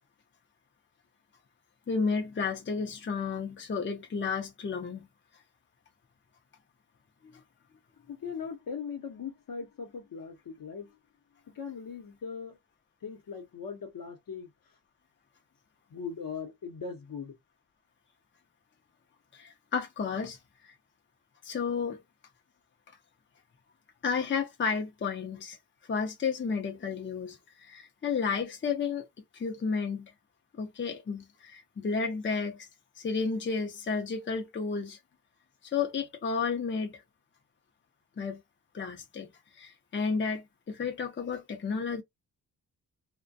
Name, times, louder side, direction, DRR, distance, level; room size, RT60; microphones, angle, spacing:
voice 1, 1.9-5.1 7.2-7.3 19.3-20.4 20.6-20.7 21.4-22.0 24.0-25.6 25.9-29.1 29.3-30.1 30.6-32.7 33.0-35.0 35.6-37.0 38.2-38.4 38.7-39.3 39.5-42.0, left 5 dB, 30° left, 0.6 m, -32 dB
voice 2, 8.1-11.0 11.5-12.6 13.0-14.5 15.9-17.4, left 6 dB, 60° left, 0.9 m, -39 dB
2.2 x 2.1 x 2.6 m
cardioid pair, 65°, 38 cm